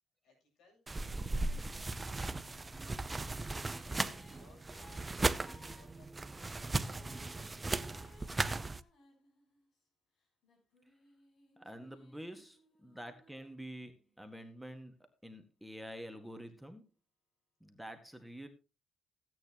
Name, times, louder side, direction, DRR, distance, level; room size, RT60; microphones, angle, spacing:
voice 1, 0.2-0.9 1.5-2.9 3.6-5.3 5.7-7.1 7.9-8.8, left 3 dB, 80° left, 1 dB, 7.5 m, -67 dB
sound 1, 0.9-8.8, right 2 dB, 20° right, 0.7 m, -37 dB
Female singing, 3.1-9.8 10.4-14.2, left 2 dB, 65° left, 6.8 m, -63 dB
voice 2, 11.6-14.9 15.2-16.8 17.6-18.5, equal, ahead, 5 dB, 1.8 m, -48 dB
16.0 x 9.2 x 3.0 m, 0.29 s
cardioid pair, 90°, 0 cm